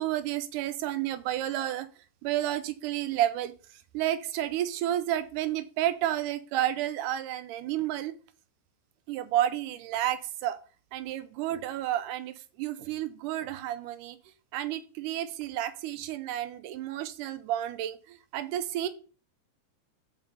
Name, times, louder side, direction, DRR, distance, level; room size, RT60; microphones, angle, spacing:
voice 1, 0.0-1.9 2.2-3.5 3.9-8.2 9.1-10.6 10.9-14.2 14.5-18.9, right 12 dB, 90° right, 13 dB, 2.2 m, -31 dB
5.8 x 5.3 x 5.5 m, 0.38 s
omnidirectional pair, 3.6 m